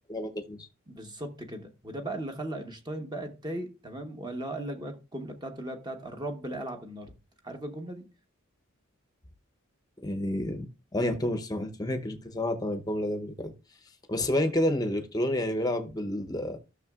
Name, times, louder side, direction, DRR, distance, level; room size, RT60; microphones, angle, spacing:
voice 1, 0.1-0.7 10.0-10.7 10.9-13.5 14.1-16.6, left 1 dB, 20° left, 0.8 m, -29 dB
voice 2, 0.9-7.1 7.4-8.1, right 1 dB, 20° right, 1.0 m, -37 dB
14.0 x 6.3 x 2.4 m
head